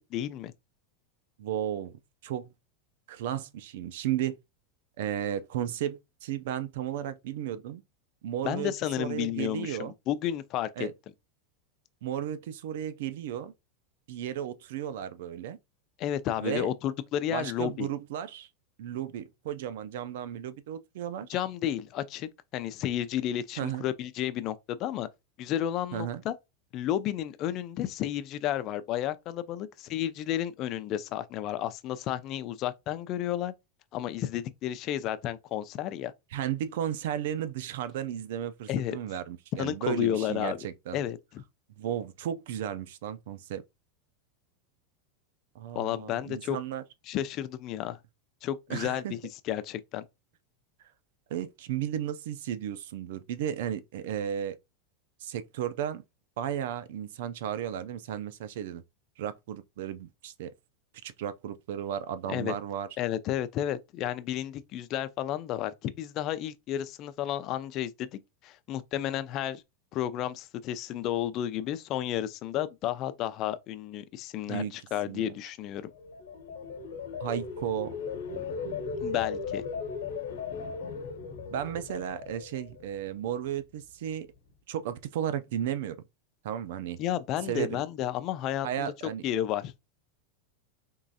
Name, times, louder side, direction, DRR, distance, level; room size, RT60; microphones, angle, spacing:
voice 1, 0.1-0.5 8.4-10.9 16.0-17.9 21.3-25.1 25.4-26.3 26.7-33.5 33.9-36.1 38.7-39.0 39.5-40.6 40.9-41.4 45.7-46.6 47.1-48.0 48.4-49.2 49.5-50.0 62.3-62.5 63.0-69.6 69.9-75.9 79.0-79.6 87.0-88.9 89.2-89.7, left 11 dB, 40° left, 0.4 m, -32 dB
voice 2, 1.4-1.9 2.2-2.5 3.1-4.4 5.0-7.8 8.2-9.9 10.8-10.9 12.0-13.5 14.1-15.6 16.4-16.7 17.3-18.5 18.8-21.4 23.6-23.8 25.9-26.2 36.3-41.0 41.8-43.6 45.5-46.8 48.7-49.1 51.3-54.6 55.2-56.0 56.4-58.8 59.2-60.5 61.0-62.9 74.5-74.7 75.1-75.3 77.2-77.9 81.5-84.3 84.7-86.0 86.4-87.0 87.5-87.8 88.6-89.3, right 10 dB, 70° right, 0.4 m, -34 dB
sound 1, 75.9-83.1 83.5-83.8, left 5 dB, 80° left, 0.9 m, -37 dB
3.7 x 3.0 x 2.7 m
supercardioid pair, 150°, 0 cm